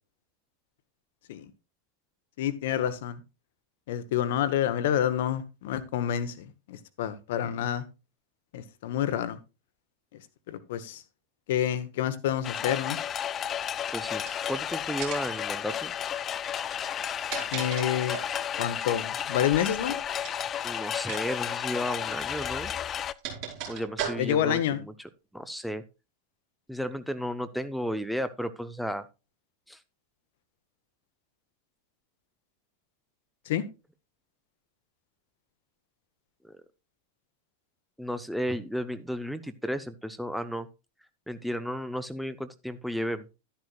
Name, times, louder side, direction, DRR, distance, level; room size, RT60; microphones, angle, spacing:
voice 1, 2.4-3.2 3.9-7.8 8.5-9.4 10.5-11.0 11.5-13.0 17.5-18.2 18.6-20.0 24.2-24.8 33.5-33.6, left 10 dB, 55° left, 14 dB, 1.1 m, -28 dB
sound 1, 12.4-23.1, left 9 dB, 25° left, 0.5 m, -32 dB
voice 2, 13.9-15.9 17.9-18.0 20.6-22.7 23.7-25.8 26.7-29.0 29.7-29.8 36.4-36.6 38.0-40.7 41.3-43.2, equal, ahead, 11 dB, 0.8 m, -33 dB
sound 2, 14.2-14.6 15.0-15.4 16.9-18.4 20.2-20.5 21.0-21.2 21.5-21.6 22.6-24.5, right 8 dB, 45° right, 5.2 m, -37 dB
12.5 x 10.5 x 2.4 m, 0.28 s
figure-of-eight pair, 90°, 0 cm